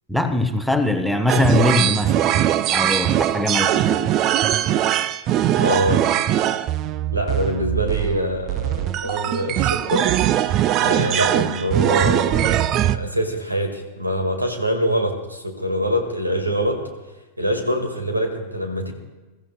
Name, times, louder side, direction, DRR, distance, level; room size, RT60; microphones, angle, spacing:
voice 1, 0.1-2.3 2.7-4.1, left 2 dB, ahead, 7 dB, 0.8 m, -21 dB
sound 1, 1.3-13.0, right 12 dB, 35° right, 0.4 m, -21 dB
voice 2, 5.6-6.1 7.1-10.1 10.8-12.7 12.9-16.8 17.4-18.9, equal, 85° right, 5 dB, 1.9 m, -24 dB
23.0 x 14.5 x 2.3 m, 1.2 s
figure-of-eight pair, 90°, 0 cm